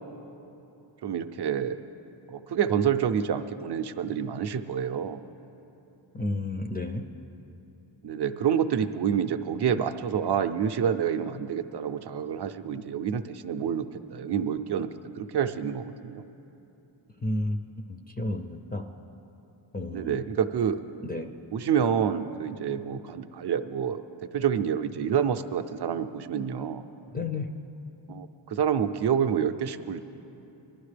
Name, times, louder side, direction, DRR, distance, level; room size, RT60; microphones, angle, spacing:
voice 1, 1.0-1.8 2.3-5.2 8.0-16.3 19.9-20.8 21.5-26.8 28.1-30.0, right 8 dB, 55° right, 9 dB, 0.6 m, -28 dB
voice 2, 6.1-7.1 17.2-18.8 19.7-20.2 21.0-21.3 27.1-27.5, left 2 dB, 20° left, 5 dB, 0.4 m, -31 dB
21.0 x 12.0 x 3.3 m, 2.9 s
wide cardioid pair, 125°, 48 cm